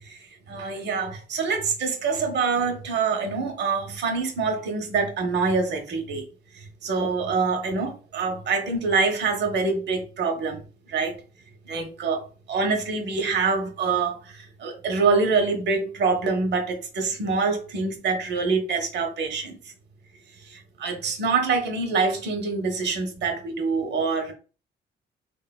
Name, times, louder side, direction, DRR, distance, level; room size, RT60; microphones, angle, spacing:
voice 1, 0.5-6.2 6.8-11.2 11.7-19.6 20.5-24.3, right 4 dB, 60° right, 0.8 m, -25 dB
3.2 x 2.2 x 2.2 m
cardioid pair, 90°, 20 cm